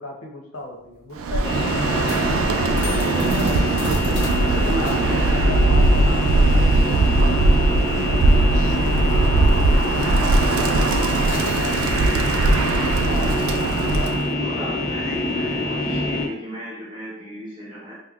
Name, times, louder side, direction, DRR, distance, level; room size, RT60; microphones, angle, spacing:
voice 1, 0.0-2.1 3.1-3.4 4.5-7.8 9.5-13.3, left 2 dB, 85° left, 0 dB, 0.8 m, -36 dB
sound 1, 0.5-9.5 9.8-10.0 10.3-16.1, left 2 dB, 55° left, 0.7 m, -40 dB
Bird, 1.2-14.3, right 2 dB, 85° right, 0.3 m, -19 dB
sound 2, 1.4-16.3, left 2 dB, 15° left, 0.6 m, -25 dB
voice 2, 3.3-3.9 4.2-5.3 6.0-6.2 7.2-7.4 8.7-8.9 12.3-12.7 14.3-17.9, equal, 25° right, -8 dB, 0.7 m, -36 dB
5.1 x 2.1 x 2.3 m, 0.78 s
head